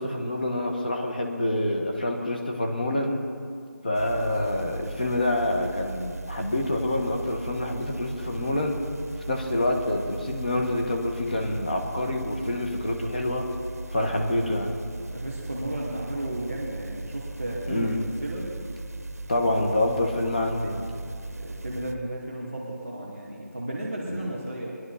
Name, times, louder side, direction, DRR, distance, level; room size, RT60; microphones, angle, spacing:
voice 1, 0.0-3.2 3.8-8.8 9.3-13.5 13.9-14.7 17.7-18.0 19.3-20.9 24.0-24.4, left 1 dB, 30° left, 2 dB, 1.3 m, -27 dB
sound 1, 3.9-21.9, right 2 dB, 60° right, 0.9 m, -38 dB
voice 2, 15.1-17.9 18.2-18.5 21.3-24.8, right 1 dB, 5° left, -12 dB, 0.4 m, -34 dB
21.0 x 11.0 x 4.2 m, 2.4 s
figure-of-eight pair, 180°, 9 cm